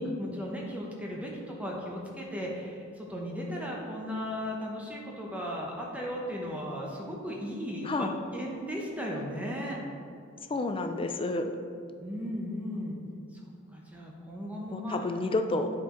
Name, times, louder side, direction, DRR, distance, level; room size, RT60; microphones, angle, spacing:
voice 1, 0.0-9.8 12.0-13.0 13.3-15.0 15.5-15.6, equal, 5° right, -2 dB, 0.8 m, -36 dB
voice 2, 7.8-8.2 10.5-11.5 14.7-15.7, left 2 dB, 25° left, 7 dB, 0.4 m, -30 dB
9.8 x 4.4 x 3.8 m, 2.3 s
head